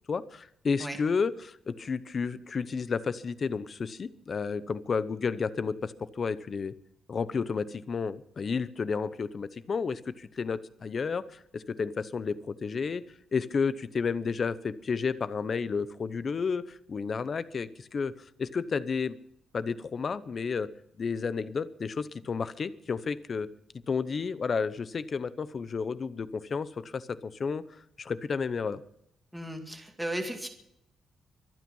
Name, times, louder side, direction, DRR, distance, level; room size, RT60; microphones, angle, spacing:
voice 1, 0.1-6.8 7.1-13.0 13.3-18.1 18.4-19.1 19.5-20.7 21.0-23.5 23.9-28.8, left 5 dB, 35° left, 15 dB, 0.8 m, -31 dB
voice 2, 29.3-30.5, right 1 dB, 5° right, 3 dB, 2.2 m, -35 dB
24.5 x 9.1 x 5.5 m, 0.74 s
cardioid pair, 140°, 0 cm